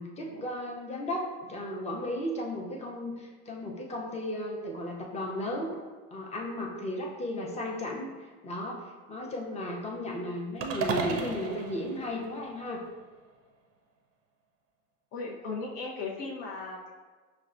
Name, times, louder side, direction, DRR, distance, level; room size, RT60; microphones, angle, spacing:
voice 1, 0.0-5.7 6.1-12.8, left 1 dB, 15° left, -1 dB, 0.6 m, -35 dB
sound 1, 10.6-12.9, right 4 dB, 35° right, 0.5 m, -34 dB
voice 2, 15.1-17.0, left 3 dB, 55° left, -3 dB, 0.6 m, -37 dB
5.5 x 2.2 x 2.5 m, 1.4 s
hypercardioid pair, 70°, 44 cm